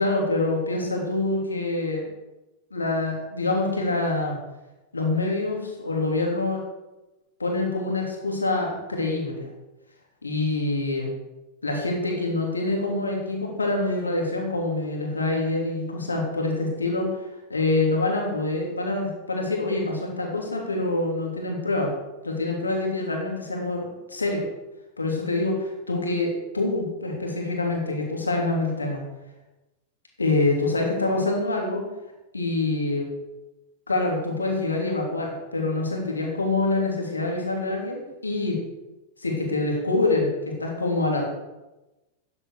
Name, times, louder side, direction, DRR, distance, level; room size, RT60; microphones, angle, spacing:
voice 1, 0.0-2.1 2.7-4.4 4.9-6.6 7.4-9.5 10.2-11.1 11.6-17.1 17.5-21.9 22.2-24.4 25.0-29.0 30.2-31.8 32.3-33.1 33.9-38.6 39.2-40.3 40.6-41.2, left 2 dB, 80° left, 0 dB, 2.9 m, -26 dB
13.0 x 9.8 x 4.8 m, 1.0 s
figure-of-eight pair, 90°, 0 cm